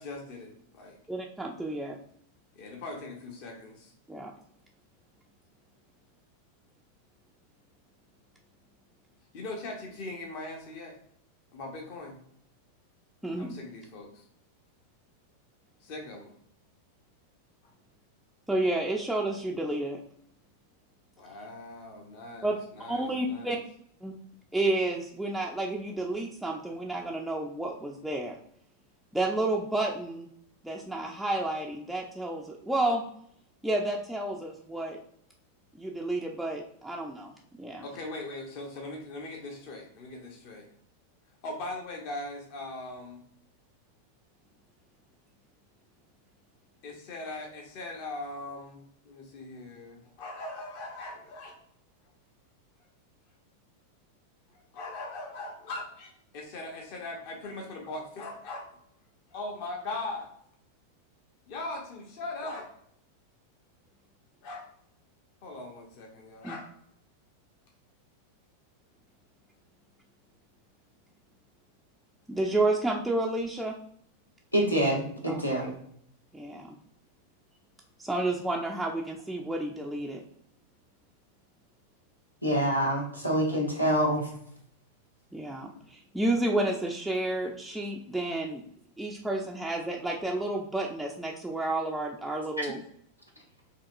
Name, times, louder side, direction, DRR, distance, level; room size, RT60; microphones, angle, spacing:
voice 1, 0.0-1.0 2.5-3.9 9.3-11.0 11.5-12.2 13.4-14.2 15.8-16.3 21.2-23.6 37.8-40.7 41.4-43.2 46.8-51.6 54.7-58.7 59.3-60.3 61.5-62.7 64.4-64.7 65.4-66.7, left 2 dB, 45° left, 1 dB, 0.8 m, -40 dB
voice 2, 1.1-2.0 4.1-4.3 13.2-13.5 18.5-20.0 22.4-22.6 22.9-23.6 24.0-24.2 24.5-28.4 29.1-30.3 30.6-33.0 33.6-35.0 35.7-37.9 66.4-66.6 72.3-73.8 75.3-75.4 76.3-76.7 78.0-80.2 85.3-88.6 89.0-92.8, right 2 dB, 5° right, -2 dB, 0.4 m, -30 dB
voice 3, 74.5-75.7 82.4-84.3 92.6-92.7, equal, 90° left, -1 dB, 0.9 m, -26 dB
4.6 x 2.9 x 2.5 m, 0.67 s
figure-of-eight pair, 90°, 0 cm